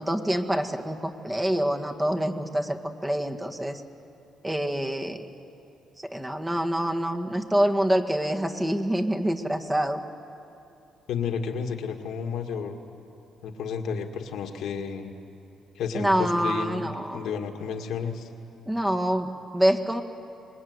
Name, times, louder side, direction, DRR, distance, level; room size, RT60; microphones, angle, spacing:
voice 1, 0.0-3.8 4.4-5.3 6.0-10.0 15.9-17.2 18.7-20.0, equal, 15° right, 4 dB, 1.8 m, -26 dB
voice 2, 11.1-12.8 13.4-15.1 15.8-18.3, left 6 dB, 80° left, 4 dB, 2.0 m, -32 dB
25.5 x 20.0 x 9.7 m, 2.7 s
cardioid pair, 90°, 0 cm